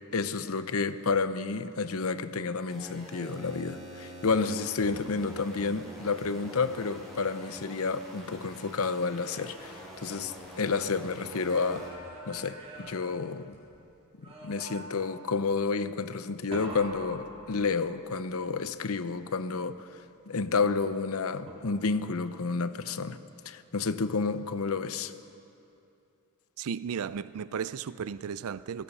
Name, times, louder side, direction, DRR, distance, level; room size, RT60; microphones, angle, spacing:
voice 1, 0.1-11.8 12.3-13.6 14.4-19.9 20.3-23.2 23.4-25.1, left 4 dB, 70° left, 0.8 m, -30 dB
sound 1, 2.7-11.9, equal, ahead, 6.6 m, -46 dB
sound 2, 9.0-10.9 11.3-13.8 14.2-15.2 16.5-18.1 21.5-22.1, right 1 dB, 30° right, 4.4 m, -46 dB
voice 2, 26.6-28.8, right 7 dB, 70° right, 0.4 m, -35 dB
25.5 x 18.5 x 5.6 m
head